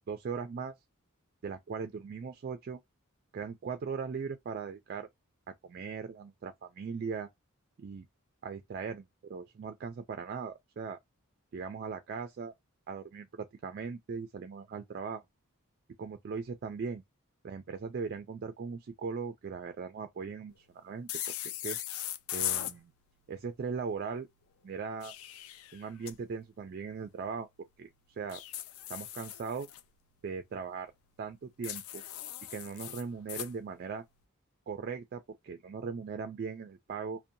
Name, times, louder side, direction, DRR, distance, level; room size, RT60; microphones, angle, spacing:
voice 1, 0.1-0.7 1.4-2.8 3.3-5.1 5.6-7.3 7.8-8.1 8.4-11.0 11.5-12.5 12.9-15.2 16.0-17.0 17.4-21.1 21.4-21.8 22.3-22.9 23.3-24.3 24.6-25.1 25.7-27.5 27.8-28.4 28.9-29.7 30.2-30.9 31.2-32.0 32.5-34.0 34.7-37.2, right 5 dB, 45° right, 0.3 m, -39 dB
sound 1, 21.1-22.8 24.8-26.1 28.3-29.8 31.6-33.5, left 12 dB, 70° left, 0.3 m, -38 dB
2.7 x 2.1 x 2.5 m
head